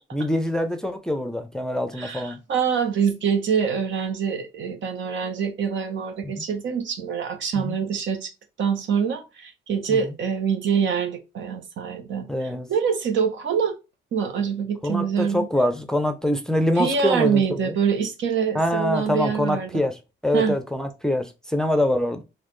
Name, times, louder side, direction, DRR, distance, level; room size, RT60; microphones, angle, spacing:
voice 1, 0.1-2.4 6.2-6.4 7.5-7.8 9.9-10.1 12.3-12.7 14.8-17.7 18.5-20.0 20.2-22.2, left 1 dB, 5° left, 0.6 m, -24 dB
voice 2, 1.9-8.3 8.6-13.7 14.1-15.5 16.7-19.8 20.3-20.6, right 6 dB, 70° right, 1.0 m, -25 dB
4.0 x 2.6 x 3.1 m
cardioid pair, 90°, 20 cm